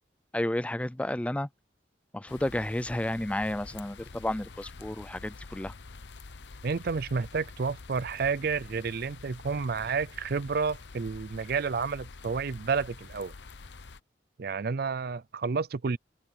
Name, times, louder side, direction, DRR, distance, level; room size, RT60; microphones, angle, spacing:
voice 1, 0.3-1.5 2.1-5.7, left 1 dB, 5° left, 0.4 m, -31 dB
sound 1, 2.3-14.0, left 3 dB, 70° left, 0.9 m, -47 dB
voice 2, 6.6-13.3 14.4-16.0, right 5 dB, 55° right, 0.5 m, -30 dB
open air
head